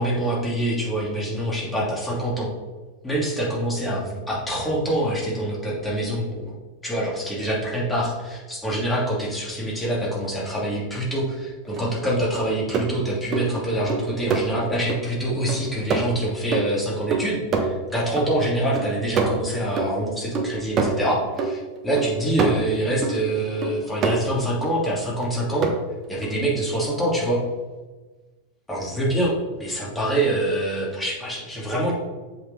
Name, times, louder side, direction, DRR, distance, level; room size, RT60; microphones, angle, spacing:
voice 1, 0.0-2.5 3.0-6.5 6.8-25.7 26.1-27.4 28.7-31.9, right 1 dB, 10° left, -5 dB, 2.7 m, -25 dB
sound 1, 11.8-11.9 12.3-15.0 15.5-18.3 18.6-23.2 23.6-24.7 25.2-25.7 26.2-26.3, right 4 dB, 30° right, 1.1 m, -26 dB
7.5 x 6.2 x 4.0 m, 1.3 s
figure-of-eight pair, 90°, 0 cm